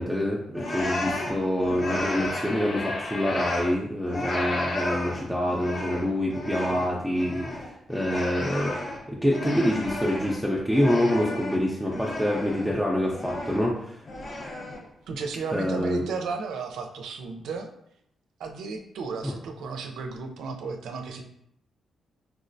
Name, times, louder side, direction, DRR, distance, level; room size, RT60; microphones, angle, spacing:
voice 1, 0.0-8.7 9.1-14.0 15.5-16.0 19.2-19.3, equal, ahead, -3 dB, 0.5 m, -26 dB
sound 1, 0.5-3.8 4.1-10.4 10.7-12.8 13.1-13.7 14.1-14.9, left 1 dB, 45° left, 0.7 m, -33 dB
voice 2, 15.1-17.7 18.4-21.3, right 4 dB, 85° right, 4 dB, 0.4 m, -34 dB
4.5 x 2.0 x 2.6 m, 0.75 s
cardioid pair, 85°, 0 cm